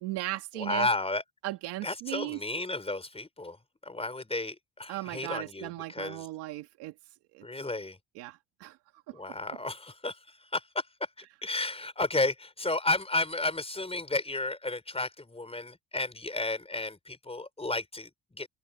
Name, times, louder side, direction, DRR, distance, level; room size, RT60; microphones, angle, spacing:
voice 1, 0.0-0.9 1.4-2.4 4.9-6.9 7.3-7.5 8.2-8.8 9.1-9.2, right 18 dB, 90° right, 1.8 m, -36 dB
voice 2, 0.5-1.2 1.8-3.6 3.8-6.3 7.4-8.0 9.1-10.8 11.2-18.5, left 2 dB, 15° left, 4.7 m, -33 dB
open air
supercardioid pair, 80°, 39 cm